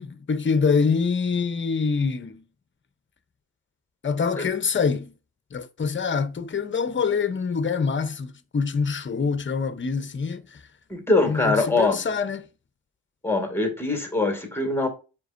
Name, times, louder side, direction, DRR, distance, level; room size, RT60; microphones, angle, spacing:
voice 1, 0.0-2.4 4.0-5.1 5.5-10.6 11.3-12.5, left 5 dB, 30° left, 0.7 m, -25 dB
voice 2, 10.9-12.0 13.2-14.9, left 3 dB, 5° left, 2.1 m, -23 dB
7.7 x 5.1 x 2.6 m
cardioid pair, 75°, 40 cm